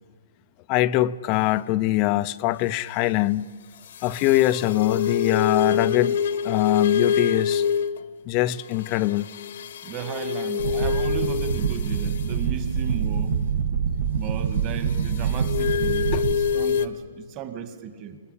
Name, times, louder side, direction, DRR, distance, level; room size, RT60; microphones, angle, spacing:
voice 1, 0.7-3.4 4.0-6.2 6.4-7.6 8.3-9.3 16.1-16.2, left 16 dB, 30° left, 0.7 m, -22 dB
sound 1, 3.8-8.1 8.7-12.4 14.9-16.9, left 7 dB, 60° left, 1.4 m, -26 dB
voice 2, 9.8-13.4 14.1-18.2, right 8 dB, 30° right, 2.1 m, -35 dB
sound 2, 10.6-16.3, right 6 dB, 65° right, 2.1 m, -25 dB
28.0 x 20.0 x 8.6 m
hypercardioid pair, 155°, 0 cm